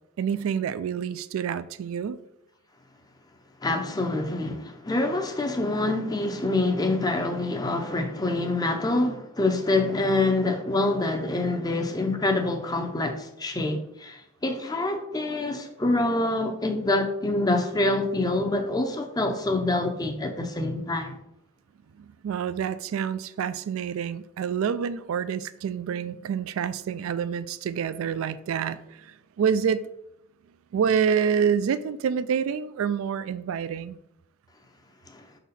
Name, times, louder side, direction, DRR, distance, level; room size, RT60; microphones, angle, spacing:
voice 1, 0.2-2.2 22.2-28.8 29.4-29.8 30.7-34.0, right 7 dB, 75° right, 0.3 m, -27 dB
voice 2, 3.6-21.2, left 2 dB, 20° left, 0.5 m, -26 dB
5.9 x 4.0 x 4.1 m
head